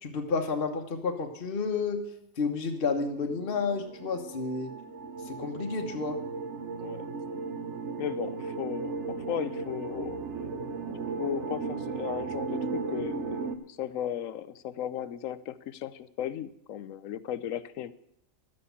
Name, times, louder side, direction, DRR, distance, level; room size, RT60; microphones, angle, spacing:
voice 1, 0.0-2.0 2.4-4.7 5.3-6.2, left 4 dB, 45° left, 3 dB, 1.3 m, -30 dB
sound 1, 2.9-13.6, right 4 dB, 60° right, 1.1 m, -36 dB
voice 2, 8.0-10.2 10.9-17.9, left 10 dB, 70° left, 15 dB, 1.0 m, -36 dB
12.0 x 7.7 x 8.2 m, 0.75 s
omnidirectional pair, 1.4 m